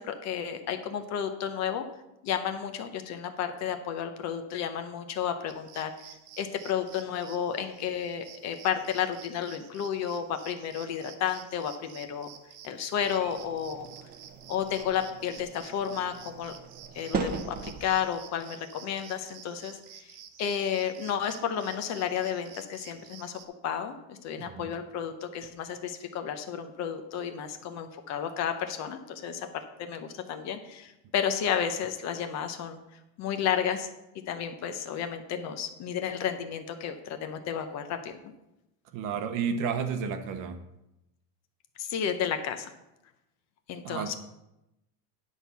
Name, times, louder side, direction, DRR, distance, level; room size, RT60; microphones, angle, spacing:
voice 1, 0.0-1.9 2.2-12.3 12.6-13.9 14.5-16.5 16.9-32.8 33.2-33.9 34.3-38.1 41.8-42.7 43.7-44.1, left 8 dB, 35° left, 7 dB, 0.7 m, -32 dB
sound 1, 5.5-23.5, right 9 dB, 90° right, 1.1 m, -51 dB
sound 2, 13.0-18.1, right 6 dB, 20° right, 0.6 m, -39 dB
voice 2, 38.9-40.6 43.8-44.2, right 6 dB, 45° right, 8 dB, 0.9 m, -31 dB
9.9 x 4.6 x 6.9 m, 0.91 s
cardioid pair, 160°, 46 cm